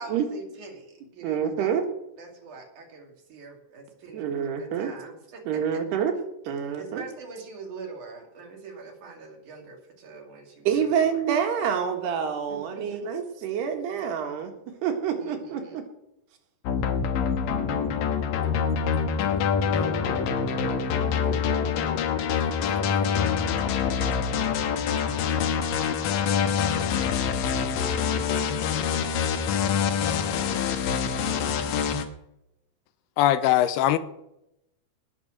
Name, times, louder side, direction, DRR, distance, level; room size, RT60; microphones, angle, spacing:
voice 1, 0.0-1.8 2.2-5.4 5.7-5.8 6.8-11.2 12.5-13.0 15.2-15.8 19.1-19.2 19.6-21.9, right 4 dB, 55° right, 3.6 m, -43 dB
voice 2, 1.2-1.8 4.1-4.9 5.5-6.1 6.5-7.0 10.7-14.5 14.8-15.8 19.7-20.2 20.6-20.9, right 8 dB, 85° right, 3.8 m, -27 dB
sound 1, 16.7-32.1, left 7 dB, 70° left, 2.5 m, -25 dB
voice 3, 33.2-34.0, left 13 dB, 90° left, 2.7 m, -20 dB
19.5 x 7.0 x 6.4 m
omnidirectional pair, 4.6 m